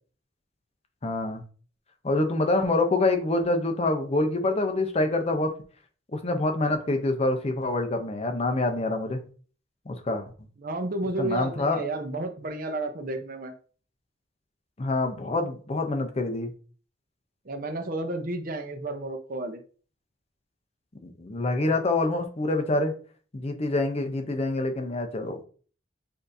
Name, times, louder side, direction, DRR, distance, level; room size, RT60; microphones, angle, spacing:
voice 1, 1.0-1.4 2.0-5.5 6.1-9.2 9.9-10.2 11.2-11.8 14.8-16.5 21.0-22.9 23.3-25.4, left 2 dB, 35° left, 5 dB, 0.6 m, -26 dB
voice 2, 10.6-13.5 17.4-19.6, right 2 dB, 50° right, 6 dB, 0.7 m, -31 dB
6.7 x 2.7 x 2.6 m, 0.41 s
head